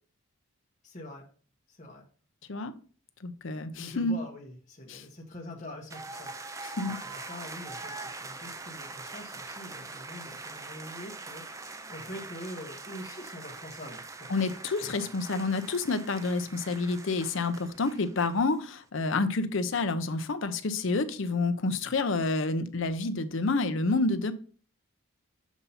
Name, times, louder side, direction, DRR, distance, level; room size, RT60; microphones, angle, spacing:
voice 1, 0.8-1.2 1.7-2.0 3.8-6.6 7.0-11.6 11.9-14.6, left 1 dB, 35° left, -1 dB, 1.0 m, -44 dB
voice 2, 3.2-4.1 4.9-5.0 6.8-7.0 14.3-24.3, left 3 dB, 60° left, 10 dB, 0.6 m, -29 dB
sound 1, 5.9-18.6, right 3 dB, 15° right, 0.3 m, -43 dB
7.1 x 2.7 x 5.5 m, 0.41 s
head